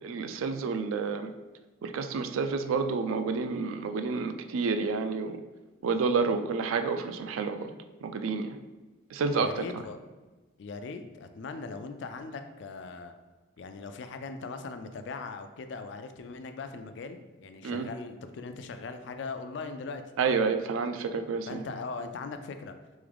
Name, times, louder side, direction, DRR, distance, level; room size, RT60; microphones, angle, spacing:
voice 1, 0.0-1.3 1.8-5.4 5.8-7.7 8.0-8.6 9.1-9.8 17.6-17.9 20.2-21.6, right 4 dB, 85° right, 8 dB, 0.4 m, -29 dB
voice 2, 9.4-10.0 10.6-13.1 13.6-20.0 20.3-20.6 21.5-22.8, left 4 dB, 60° left, 8 dB, 0.3 m, -40 dB
3.6 x 3.4 x 3.4 m, 1.2 s
head